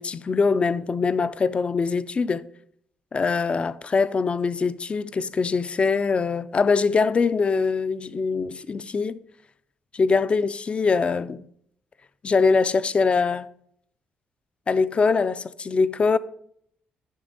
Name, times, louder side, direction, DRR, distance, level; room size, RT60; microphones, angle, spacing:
voice 1, 0.0-2.5 3.1-9.2 9.9-11.5 12.2-13.5 14.7-16.2, left 4 dB, 35° left, 0.4 m, -23 dB
10.0 x 5.9 x 4.0 m
cardioid pair, 105°, 4 cm